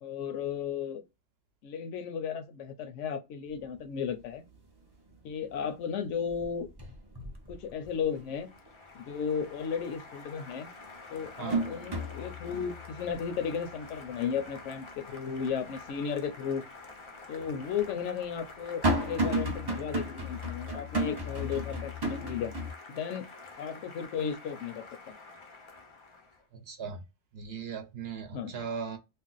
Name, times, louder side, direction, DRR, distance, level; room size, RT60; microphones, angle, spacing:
voice 1, 0.0-1.0 1.6-4.4 5.2-6.7 7.5-8.5 8.9-10.7 11.1-16.6 17.3-22.5 22.9-23.3 23.6-25.1 28.3-28.6, left 7 dB, 75° left, 0.9 m, -34 dB
sound 1, 3.5-3.6 4.0-4.6 4.9-5.7 6.0-8.3 8.7-8.8 10.2-10.3 10.8-16.0 16.4-16.5 17.4-22.7, right 1 dB, 35° right, 0.4 m, -34 dB
Applause, 7.6-26.4, left 3 dB, 50° left, 0.3 m, -49 dB
voice 2, 26.7-27.0 27.3-29.0, right 6 dB, 65° right, 0.8 m, -38 dB
2.6 x 2.0 x 3.8 m
omnidirectional pair, 1.3 m